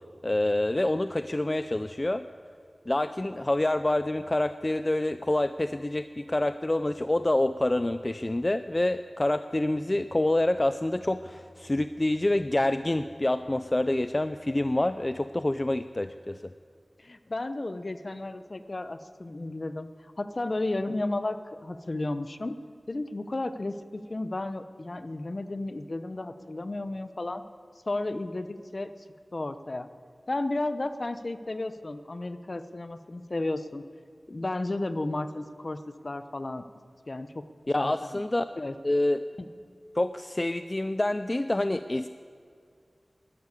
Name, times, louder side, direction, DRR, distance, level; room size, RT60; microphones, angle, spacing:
voice 1, 0.2-2.3 2.9-16.5 37.7-38.5 38.8-39.2 39.9-42.1, left 1 dB, 35° left, 11 dB, 0.5 m, -27 dB
voice 2, 17.0-22.6 22.9-27.4 27.9-28.9 29.3-29.9 30.3-33.8 34.3-35.8 36.0-36.7 37.1-37.4 37.7-38.2 38.6-38.7 39.4-39.5, left 2 dB, 50° left, 11 dB, 0.9 m, -33 dB
12.5 x 12.0 x 9.7 m, 2.2 s
wide cardioid pair, 50°, 0 cm